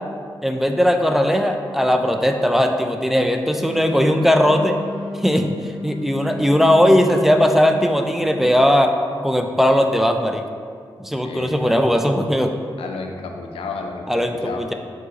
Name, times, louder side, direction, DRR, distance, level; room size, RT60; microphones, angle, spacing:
voice 1, 0.4-4.8 5.2-5.5 5.8-8.9 9.2-10.4 11.0-12.5 14.1-14.7, equal, 5° right, 4 dB, 0.4 m, -18 dB
Wind instrument woodwind instrument, 3.6-8.3, left 2 dB, 70° right, 0.8 m, -35 dB
voice 2, 11.2-11.7 12.8-14.6, left 4 dB, 90° left, 3 dB, 0.4 m, -32 dB
4.7 x 3.8 x 2.9 m, 2.2 s
supercardioid pair, 40°, 10 cm